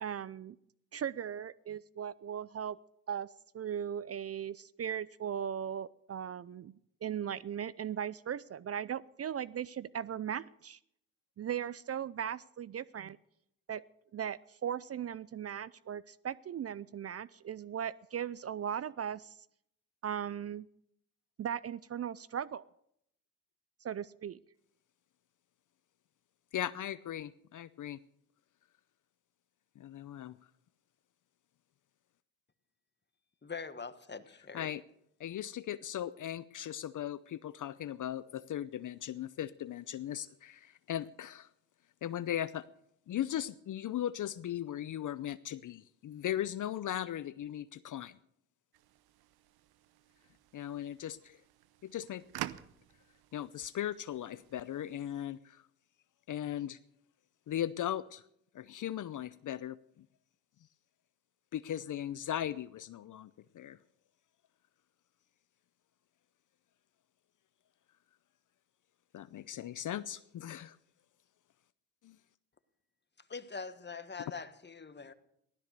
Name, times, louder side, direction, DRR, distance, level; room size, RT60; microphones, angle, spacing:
voice 1, 0.0-0.6 0.9-2.8 3.1-3.3 3.5-10.8 11.4-13.2 13.7-13.8 14.1-19.4 20.0-20.7 21.4-22.6 23.8-24.4, right 9 dB, 40° right, 0.5 m, -38 dB
voice 2, 26.5-28.0 29.8-30.4 34.5-34.8 35.2-41.5 42.0-42.7 43.1-48.2 50.5-51.4 51.8-52.2 53.3-55.6 56.3-56.8 57.5-58.2 58.5-60.1 61.5-63.8 69.1-70.8 72.0-72.2, left 11 dB, 50° left, 0.6 m, -38 dB
voice 3, 33.4-34.7 73.3-75.1, left 5 dB, 25° left, 1.4 m, -43 dB
sound 1, 48.7-55.3, right 14 dB, 70° right, 0.8 m, -49 dB
16.0 x 12.5 x 6.7 m
supercardioid pair, 55°, 39 cm